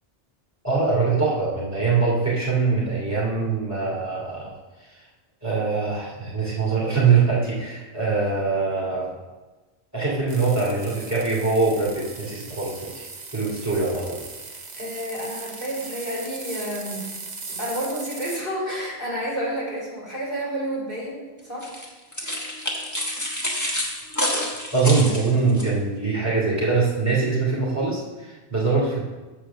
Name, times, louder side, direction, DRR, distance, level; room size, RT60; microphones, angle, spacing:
voice 1, 0.6-4.5 4.8-5.0 5.4-9.1 9.9-13.1 13.3-14.2 24.7-29.0, right 4 dB, 15° right, -6 dB, 2.7 m, -23 dB
sound 1, 10.3-18.4, right 4 dB, 45° right, 1.0 m, -38 dB
voice 2, 14.8-17.1 17.5-21.7, equal, 55° left, -6 dB, 3.2 m, -30 dB
sound 2, 21.6-25.7, left 1 dB, 15° left, 1.4 m, -28 dB
7.5 x 5.1 x 6.9 m, 1.2 s
omnidirectional pair, 1.1 m